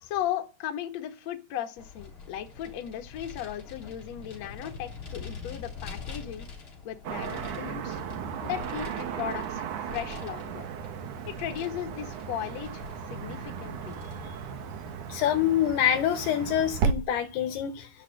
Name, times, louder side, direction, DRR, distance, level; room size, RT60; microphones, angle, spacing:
voice 1, 0.0-6.5 6.8-8.0 8.4-10.6 11.4-13.9, left 11 dB, 55° left, 2.0 m, -36 dB
Vehicle, 1.8-15.0, left 5 dB, 30° left, 3.5 m, -45 dB
Car passing by / Traffic noise roadway noise, 7.0-16.9, right 6 dB, 65° right, 2.0 m, -35 dB
voice 2, 15.1-17.9, left 10 dB, 75° left, 2.6 m, -26 dB
12.5 x 10.0 x 7.8 m
omnidirectional pair, 5.2 m